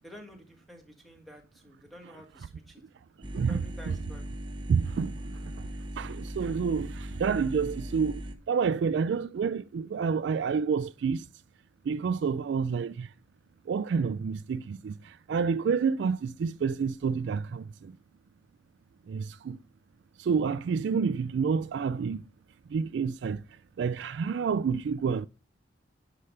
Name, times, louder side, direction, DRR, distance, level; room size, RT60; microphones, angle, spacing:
voice 1, 0.0-2.8 3.5-4.3, equal, ahead, 1.6 m, -50 dB
sound 1, 3.2-8.3, right 1 dB, 25° right, 0.8 m, -39 dB
voice 2, 3.3-3.9 4.7-5.1 6.0-8.2 8.5-11.2 11.9-13.1 13.7-14.9 15.3-17.9 19.1-19.6 20.2-22.2 22.7-23.4 23.8-25.3, right 6 dB, 70° right, 0.3 m, -28 dB
9.9 x 5.0 x 3.2 m
head